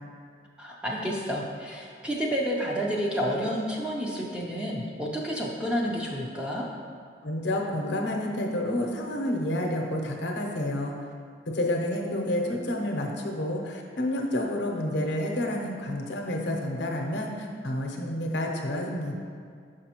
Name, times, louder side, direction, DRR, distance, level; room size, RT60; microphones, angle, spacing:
voice 1, 0.6-6.7, equal, 5° right, -3 dB, 0.5 m, -30 dB
voice 2, 7.2-10.9 11.5-19.1, left 1 dB, 70° left, 0 dB, 0.7 m, -29 dB
6.3 x 5.1 x 2.9 m, 2.2 s
head